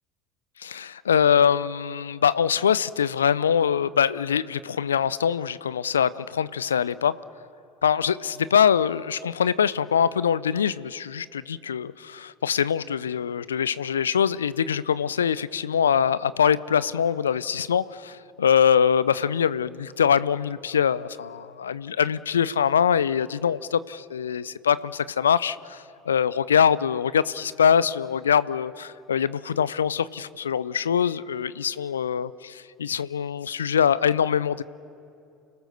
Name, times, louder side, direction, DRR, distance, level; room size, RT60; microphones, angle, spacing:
voice 1, 0.6-7.2 7.8-34.6, left 8 dB, 80° left, 18 dB, 0.4 m, -23 dB
30.0 x 17.5 x 6.6 m, 2.7 s
figure-of-eight pair, 65°, 0 cm